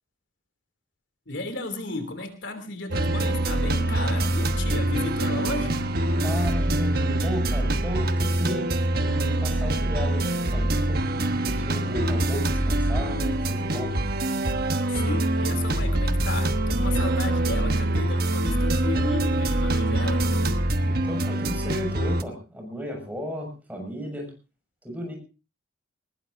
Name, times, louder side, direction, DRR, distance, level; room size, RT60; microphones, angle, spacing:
voice 1, 1.3-5.8 14.9-20.2, left 2 dB, 70° left, 8 dB, 3.1 m, -34 dB
sound 1, 2.9-22.2, right 1 dB, 50° right, 1.2 m, -24 dB
voice 2, 6.2-11.0 11.4-13.9 20.8-24.3 24.8-25.1, equal, 10° right, 2 dB, 6.4 m, -34 dB
21.0 x 20.0 x 2.7 m, 0.33 s
head